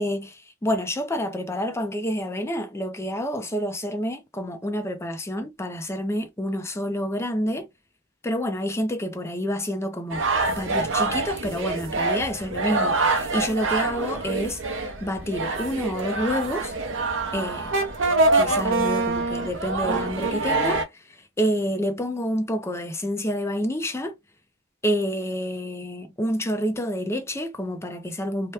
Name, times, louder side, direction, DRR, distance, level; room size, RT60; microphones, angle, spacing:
voice 1, 0.0-7.7 8.2-16.7 17.3-17.7 18.3-24.1 24.8-28.5, equal, 15° left, 0.5 m, -28 dB
sound 1, 10.1-20.8, right 3 dB, 70° right, 0.7 m, -25 dB
2.8 x 2.2 x 3.3 m
head